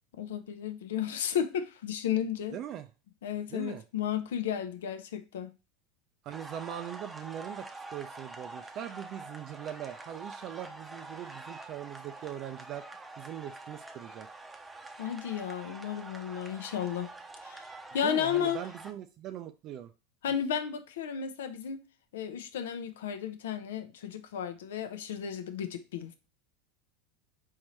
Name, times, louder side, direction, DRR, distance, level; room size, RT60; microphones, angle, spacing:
voice 1, 0.1-2.6 3.2-5.5 15.0-17.1 17.4-18.6 20.2-21.8 22.1-26.1, left 9 dB, 80° left, 0.6 m, -33 dB
voice 2, 2.5-2.9 3.5-3.8 6.2-12.8 13.2-14.3 18.0-19.9, right 10 dB, 50° right, 0.4 m, -41 dB
sound 1, 6.3-18.9, right 2 dB, 15° right, 0.7 m, -46 dB
4.3 x 3.8 x 3.1 m
hypercardioid pair, 95°, 0 cm